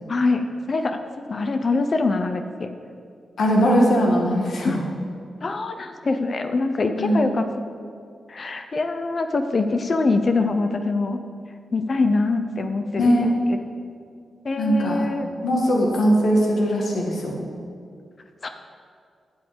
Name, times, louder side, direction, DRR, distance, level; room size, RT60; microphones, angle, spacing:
voice 1, 0.1-1.0 1.3-2.7 4.6-4.8 5.4-7.5 8.3-11.2 11.7-13.6 14.4-15.3 18.4-18.5, left 3 dB, 50° left, 7 dB, 0.7 m, -24 dB
voice 2, 3.4-4.8 7.0-7.2 13.0-13.3 14.6-15.1 15.4-17.4, equal, 75° left, -1 dB, 1.9 m, -20 dB
9.3 x 6.4 x 6.9 m, 2.3 s
cardioid pair, 50°, 0 cm